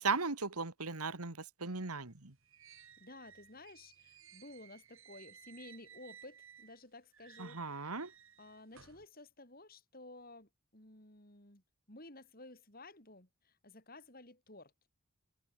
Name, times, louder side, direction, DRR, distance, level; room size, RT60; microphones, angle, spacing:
voice 1, 0.0-2.3 7.4-8.1, right 4 dB, 90° right, 2.2 m, -37 dB
sound 1, 2.1-6.8 7.1-9.1, right 8 dB, 65° right, 7.1 m, -59 dB
voice 2, 3.0-8.1 8.4-14.7, left 2 dB, 40° left, 4.8 m, -54 dB
head